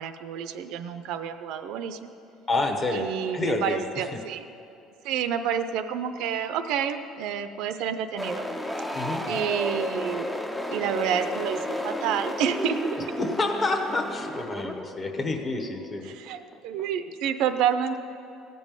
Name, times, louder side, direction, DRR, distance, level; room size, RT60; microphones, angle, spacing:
voice 1, 0.0-2.1 2.9-4.4 5.0-8.5 9.3-10.3 10.7-13.0 16.1-18.0, right 8 dB, 65° right, 10 dB, 0.6 m, -29 dB
voice 2, 2.5-3.1 3.3-4.2 8.9-9.4 13.2-16.1, left 2 dB, 20° left, 3 dB, 1.0 m, -28 dB
sound 1, 8.2-16.9, left 1 dB, 5° left, 0.5 m, -32 dB
15.5 x 5.3 x 8.9 m, 2.7 s
cardioid pair, 170°, 0 cm